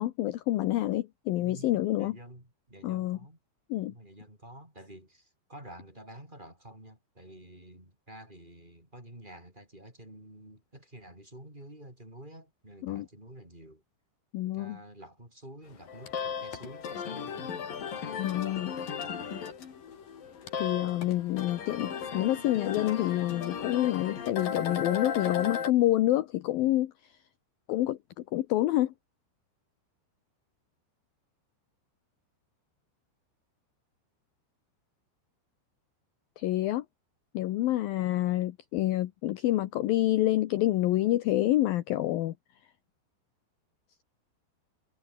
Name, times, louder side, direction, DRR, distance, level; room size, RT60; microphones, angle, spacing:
voice 1, 0.0-2.2 2.8-3.2 3.7-3.9 12.8-13.1 14.3-14.8 18.2-18.7 20.6-26.9 27.7-28.0 28.3-28.9 36.4-36.8 37.3-42.3, left 15 dB, 75° left, 2.2 m, -27 dB
voice 2, 1.3-3.4 3.9-13.8 14.4-17.7 18.5-19.5, right 1 dB, 10° right, 7.6 m, -50 dB
sound 1, 15.7-25.7, left 7 dB, 50° left, 4.6 m, -36 dB
omnidirectional pair, 5.5 m